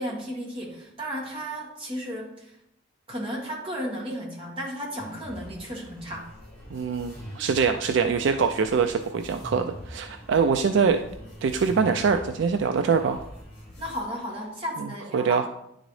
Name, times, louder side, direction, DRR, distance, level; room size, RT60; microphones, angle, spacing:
voice 1, 0.0-2.6 3.1-6.3 13.8-15.4, equal, 30° right, -2 dB, 1.5 m, -34 dB
sound 1, 5.0-14.0, equal, 10° left, 2.2 m, -43 dB
voice 2, 6.7-11.0 11.4-13.2 15.1-15.5, right 5 dB, 65° right, 7 dB, 0.3 m, -23 dB
10.0 x 3.9 x 3.2 m, 0.79 s
head